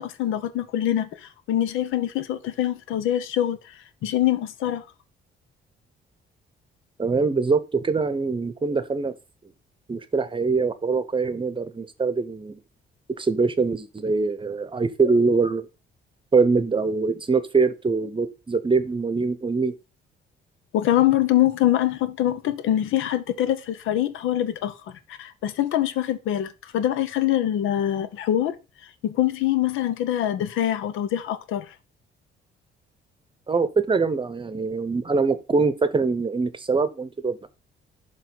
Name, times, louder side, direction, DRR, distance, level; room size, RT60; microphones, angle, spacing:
voice 1, 0.0-4.8 20.7-28.5 29.0-31.7, left 12 dB, 90° left, 0.8 m, -24 dB
voice 2, 7.0-9.1 9.9-12.6 13.2-15.7 16.3-19.7 33.5-37.5, right 4 dB, 25° right, 0.8 m, -23 dB
7.0 x 3.1 x 6.0 m
cardioid pair, 90°, 20 cm